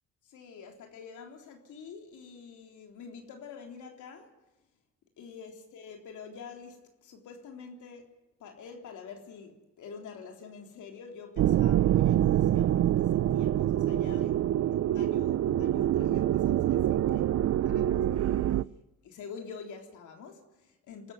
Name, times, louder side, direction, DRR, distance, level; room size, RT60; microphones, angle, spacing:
voice 1, 0.3-4.3 5.2-18.6 19.0-21.1, left 5 dB, 80° left, 3.7 m, -47 dB
sound 1, 11.4-18.6, right 12 dB, 60° right, 0.6 m, -25 dB
26.0 x 14.0 x 8.2 m
cardioid pair, 90°, 30 cm